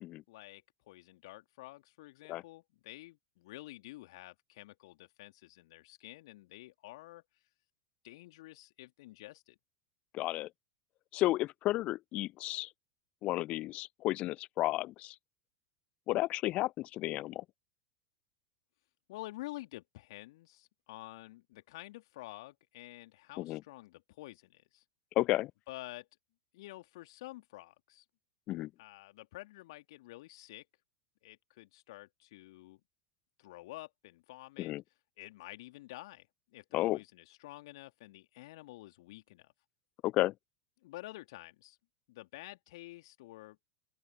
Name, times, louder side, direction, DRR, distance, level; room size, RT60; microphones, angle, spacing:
voice 1, 0.3-7.2 8.0-9.6 19.1-24.8 25.7-26.1 26.5-28.0 28.8-30.7 31.2-32.8 33.4-34.7 35.2-36.3 36.5-39.5 40.8-41.8 42.1-43.6, left 18 dB, 60° left, 2.5 m, -49 dB
voice 2, 10.1-10.5 11.1-12.7 13.2-15.1 16.1-17.4 23.4-23.6 25.2-25.5 28.5-28.7 34.6-34.8 36.7-37.0 40.0-40.3, left 17 dB, 40° left, 0.7 m, -32 dB
open air
figure-of-eight pair, 85°, 3 cm